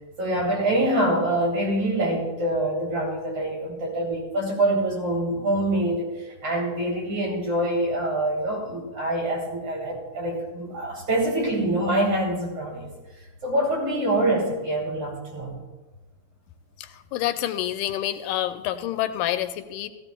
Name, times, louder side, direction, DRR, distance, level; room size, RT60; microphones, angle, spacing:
voice 1, 0.2-12.9 13.4-15.6, right 1 dB, 45° right, -2 dB, 3.6 m, -25 dB
voice 2, 17.1-19.9, left 13 dB, 85° left, 9 dB, 2.2 m, -27 dB
15.5 x 14.5 x 2.2 m, 1.2 s
omnidirectional pair, 3.7 m